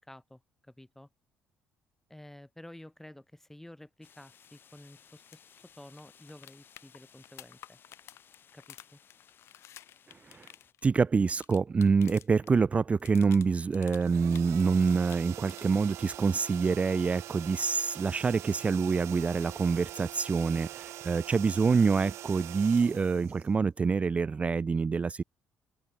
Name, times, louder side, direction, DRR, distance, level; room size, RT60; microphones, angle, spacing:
voice 1, 0.0-1.1 2.1-7.8 8.5-9.0, left 1 dB, 5° left, 6.8 m, -51 dB
sound 1, 4.0-10.7, left 8 dB, 50° left, 2.7 m, -60 dB
sound 2, 5.3-5.4 5.7-5.8 6.0-12.5 12.8-14.6 14.9-15.9 17.9-18.0, left 13 dB, 70° left, 1.1 m, -52 dB
voice 2, 10.8-25.2, right 5 dB, 30° right, 0.3 m, -26 dB
pump for air bed, 14.0-23.9, right 15 dB, 75° right, 0.8 m, -44 dB
open air
cardioid pair, 90°, 5 cm